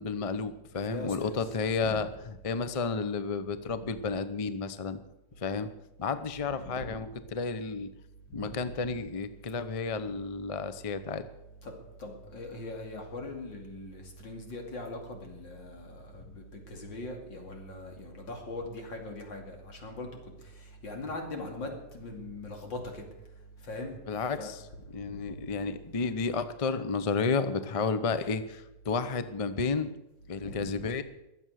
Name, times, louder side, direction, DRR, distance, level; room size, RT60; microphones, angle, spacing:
voice 1, 0.0-5.0 5.4-5.7 6.0-7.9 8.3-11.2 24.1-24.6 24.9-29.9 30.3-31.0, left 4 dB, 45° left, 12 dB, 0.4 m, -32 dB
voice 2, 0.8-1.4 1.8-2.1 3.8-3.9 6.5-7.0 8.3-9.0 11.6-11.7 12.0-23.1 23.6-23.9 24.3-24.5 25.1-25.4 30.4-30.8, left 2 dB, 90° left, 2 dB, 3.3 m, -41 dB
22.0 x 8.0 x 6.4 m, 0.93 s
omnidirectional pair, 2.0 m